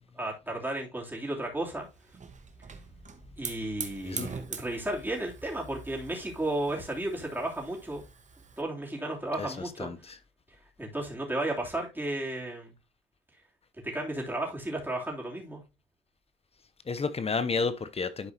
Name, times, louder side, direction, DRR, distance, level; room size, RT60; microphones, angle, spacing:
voice 1, 0.1-1.9 3.4-8.0 8.6-9.9 10.8-12.7 13.8-15.6, right 1 dB, 10° right, 3.3 m, -33 dB
Hiss / Fire, 1.8-8.6, right 5 dB, 40° right, 1.3 m, -43 dB
voice 2, 9.4-10.2 16.9-18.3, left 4 dB, 30° left, 0.8 m, -31 dB
11.5 x 4.7 x 2.9 m
cardioid pair, 90°, 20 cm